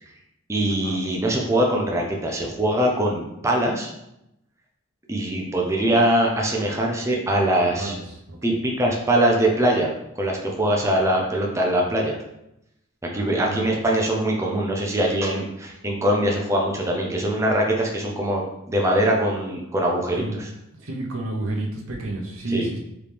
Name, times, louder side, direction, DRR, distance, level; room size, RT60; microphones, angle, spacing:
voice 1, 0.5-3.9 5.1-7.9 8.4-12.2 13.0-18.4 18.7-20.5 22.5-22.7, right 1 dB, 15° right, -1 dB, 0.5 m, -22 dB
voice 2, 7.6-8.0 8.3-8.6 13.1-13.7 20.1-20.4 20.8-22.8, right 2 dB, 75° right, 0 dB, 0.8 m, -30 dB
4.9 x 3.1 x 3.4 m, 0.86 s
head